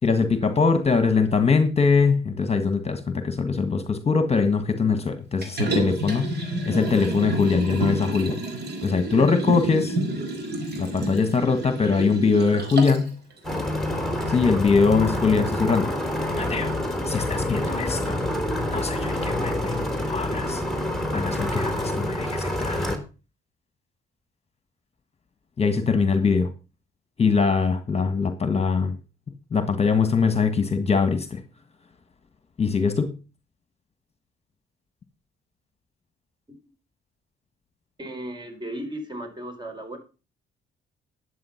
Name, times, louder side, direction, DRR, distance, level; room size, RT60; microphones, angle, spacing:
voice 1, 0.0-6.3 6.6-8.4 8.8-10.0 10.8-13.1 14.3-16.7 17.0-18.2 18.7-19.8 20.1-20.6 21.1-22.9 25.6-26.5 27.2-29.0 29.5-31.4 32.6-33.1, left 5 dB, 30° left, 9 dB, 1.6 m, -22 dB
Liquid, 5.4-13.1 13.5-13.6, right 2 dB, 55° right, 4.4 m, -29 dB
sound 1, 13.4-23.0, left 1 dB, ahead, 3.4 m, -27 dB
voice 2, 38.0-40.0, right 1 dB, 20° right, 6 dB, 4.5 m, -35 dB
11.5 x 8.2 x 5.8 m, 0.33 s
cardioid pair, 90°, 20 cm